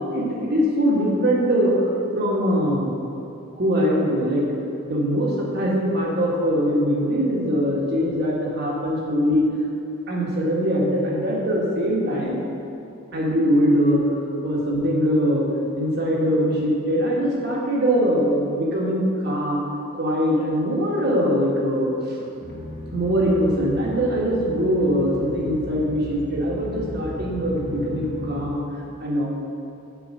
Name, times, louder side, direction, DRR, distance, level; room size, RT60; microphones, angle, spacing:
voice 1, 0.0-2.9 3.6-4.4 4.9-9.5 10.1-12.4 13.1-14.0 14.4-15.5 15.8-19.6 19.9-22.2 22.9-28.6 29.0-29.3, equal, 45° right, -3 dB, 1.6 m, -22 dB
sound 1, 22.4-28.6, left 1 dB, 40° left, 1.4 m, -36 dB
7.0 x 5.4 x 6.3 m, 2.9 s
head